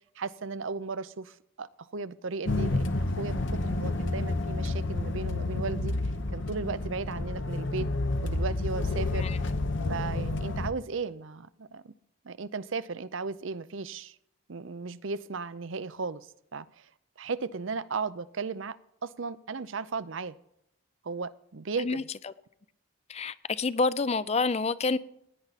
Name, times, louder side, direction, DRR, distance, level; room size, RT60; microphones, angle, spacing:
voice 1, 0.0-5.9 6.3-7.9 8.2-9.3 9.9-11.9 12.2-14.2 14.5-16.9 17.2-20.4 21.0-22.1, right 4 dB, 65° right, 16 dB, 0.6 m, -36 dB
sound 1, 2.4-10.7, left 2 dB, 60° left, 0.9 m, -30 dB
voice 2, 23.1-25.0, left 3 dB, 30° left, 17 dB, 0.4 m, -28 dB
16.5 x 10.0 x 4.1 m, 0.78 s
head